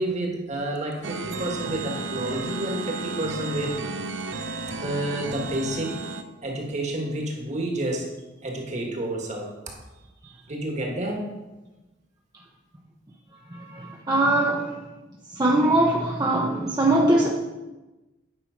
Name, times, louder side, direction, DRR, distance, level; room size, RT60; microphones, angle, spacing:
voice 1, 0.0-3.8 4.8-5.9 6.4-8.1 8.4-9.8 10.5-11.3, right 1 dB, 40° right, 1.6 m, -29 dB
sound 1, 1.0-6.2, right 3 dB, 70° right, 0.7 m, -33 dB
voice 2, 13.7-14.7 15.4-17.3, right 1 dB, 20° right, 0.7 m, -21 dB
9.0 x 5.6 x 5.1 m
head